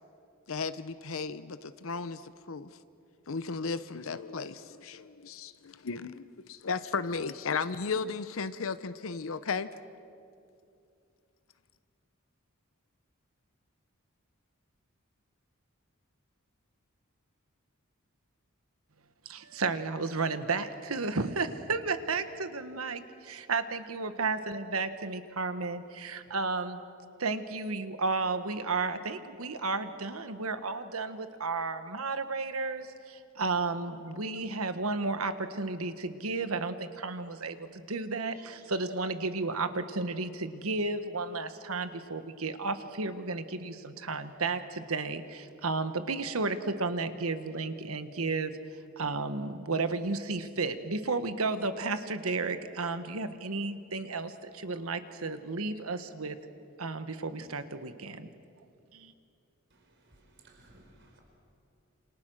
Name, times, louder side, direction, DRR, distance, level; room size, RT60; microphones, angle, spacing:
voice 1, 0.5-2.8 3.3-9.7, left 4 dB, 70° left, 13 dB, 0.7 m, -35 dB
voice 2, 19.2-26.8 27.2-48.6 49.0-56.4 56.8-58.3 58.9-59.1, right 3 dB, 85° right, 10 dB, 1.4 m, -33 dB
voice 3, 59.7-61.2, right 2 dB, 55° right, 2 dB, 4.7 m, -59 dB
28.0 x 27.0 x 6.4 m, 2.5 s
head